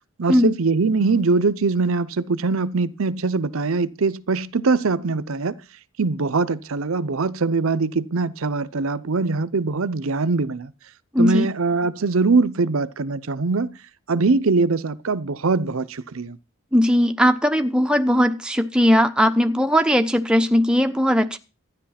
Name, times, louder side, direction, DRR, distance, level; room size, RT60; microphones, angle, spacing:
voice 1, 0.2-5.6 6.0-10.7 11.2-13.8 14.1-16.4, right 4 dB, 75° right, 0.7 m, -22 dB
voice 2, 11.1-11.5 16.7-21.4, equal, 5° right, 0.8 m, -18 dB
13.0 x 10.5 x 5.8 m
head